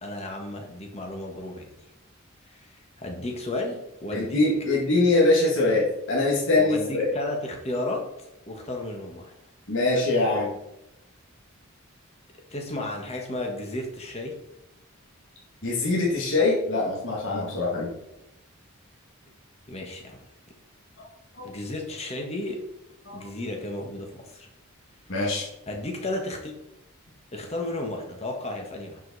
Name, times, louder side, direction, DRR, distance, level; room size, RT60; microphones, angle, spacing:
voice 1, 0.0-1.7 2.5-4.4 6.6-9.3 12.5-14.3 19.7-20.2 21.4-22.6 23.1-24.5 25.7-26.5 27.3-29.0, left 1 dB, 30° left, 2 dB, 1.6 m, -33 dB
voice 2, 4.1-7.1 9.7-10.5 15.6-17.9 21.4-21.5 23.0-23.2 25.1-25.5, left 2 dB, 60° left, -5 dB, 2.1 m, -23 dB
11.0 x 5.2 x 4.2 m, 0.86 s
head